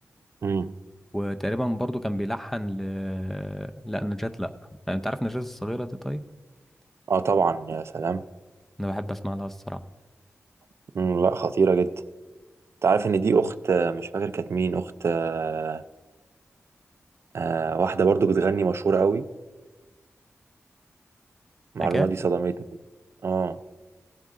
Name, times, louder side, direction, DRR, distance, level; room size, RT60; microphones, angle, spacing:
voice 1, 0.4-0.7 7.1-8.2 10.9-11.9 12.8-15.8 17.3-19.3 21.8-22.6 23.2-23.6, right 5 dB, 60° right, 13 dB, 0.4 m, -24 dB
voice 2, 1.1-4.5 4.9-6.2 8.8-9.8 21.8-22.1, equal, 5° left, 9 dB, 0.5 m, -30 dB
16.5 x 7.4 x 3.7 m, 1.2 s
wide cardioid pair, 110°, 5 cm